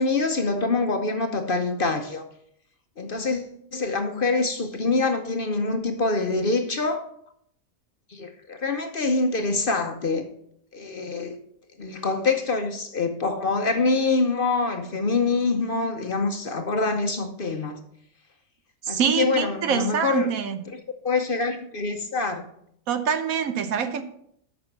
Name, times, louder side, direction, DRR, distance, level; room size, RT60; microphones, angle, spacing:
voice 1, 0.0-2.2 3.0-7.0 8.1-10.3 10.7-11.4 11.8-17.8 18.9-20.3 20.7-22.4, left 3 dB, 45° left, 0.8 m, -25 dB
voice 2, 18.8-20.6 22.9-24.0, right 7 dB, 80° right, 1.3 m, -25 dB
8.5 x 6.0 x 5.8 m
omnidirectional pair, 1.5 m